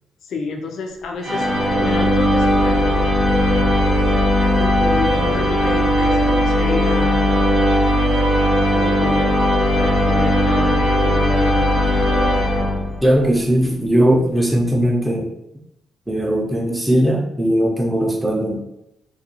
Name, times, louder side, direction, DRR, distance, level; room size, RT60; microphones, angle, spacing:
voice 1, 0.2-1.5 1.8-3.0 4.6-7.3 8.7-9.4 9.7-12.2, left 4 dB, 70° left, 2 dB, 0.4 m, -29 dB
sound 1, 1.2-13.2, equal, 45° right, 0.8 m, -17 dB
voice 2, 13.0-15.3 16.1-18.6, right 1 dB, 10° right, 0 dB, 0.6 m, -18 dB
2.4 x 2.3 x 2.9 m, 0.84 s
cardioid pair, 90°, 0 cm